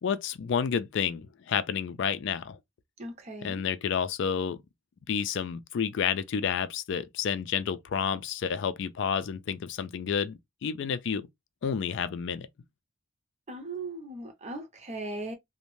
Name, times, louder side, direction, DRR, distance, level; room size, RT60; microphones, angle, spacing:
voice 1, 0.0-2.6 3.4-4.6 5.1-11.3 11.6-12.5, left 7 dB, 60° left, 0.3 m, -30 dB
voice 2, 3.0-3.6 13.5-15.3, right 2 dB, 30° right, 0.7 m, -38 dB
2.6 x 2.1 x 3.0 m
head